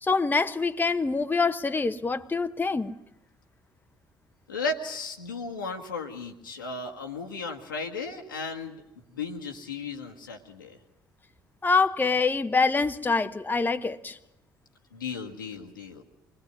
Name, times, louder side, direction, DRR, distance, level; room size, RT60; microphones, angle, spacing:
voice 1, 0.0-2.9 11.6-14.2, left 4 dB, 15° left, 1.0 m, -25 dB
voice 2, 4.5-8.8 9.1-10.8 14.9-16.0, left 3 dB, 80° left, 1.6 m, -35 dB
25.5 x 20.5 x 9.5 m
figure-of-eight pair, 50°, 11 cm